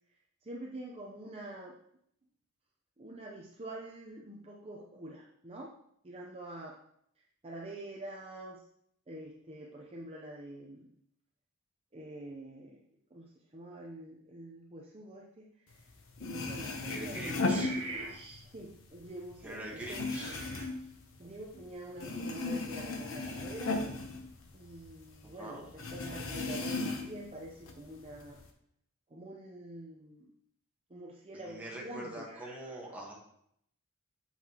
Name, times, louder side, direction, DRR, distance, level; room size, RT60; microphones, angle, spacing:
voice 1, 0.4-1.8 3.0-5.7 6.0-6.8 7.4-8.6 9.1-10.9 11.9-12.8 13.1-15.5 16.2-20.7 21.2-23.8 24.5-28.4 29.1-30.3 30.9-33.0, right 1 dB, 25° right, -2 dB, 0.7 m, -46 dB
sound 1, 15.9-16.0 16.2-18.4 18.7-21.7 22.0-25.0 25.2-25.3 25.8-27.3 27.7-28.4, left 3 dB, 65° left, 0.8 m, -36 dB
voice 2, 16.8-17.7 19.4-20.3 25.2-25.7 31.3-33.1, right 1 dB, 5° right, -3 dB, 1.3 m, -43 dB
7.5 x 5.7 x 2.9 m, 0.71 s
head